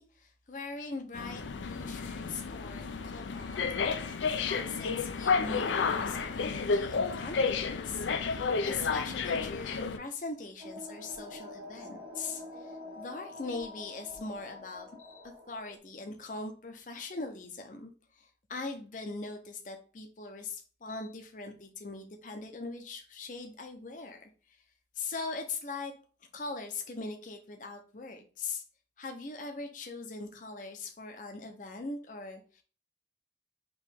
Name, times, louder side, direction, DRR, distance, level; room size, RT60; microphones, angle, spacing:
voice 1, 0.0-4.0 4.4-24.3 25.0-25.9 26.3-28.6 29.0-32.6, left 3 dB, 45° left, 4 dB, 0.6 m, -41 dB
sound 1, 1.1-10.0, left 5 dB, 90° left, 0.5 m, -31 dB
sound 2, 10.6-15.8, left 2 dB, 30° right, 1.2 m, -46 dB
4.6 x 3.0 x 3.4 m, 0.38 s
head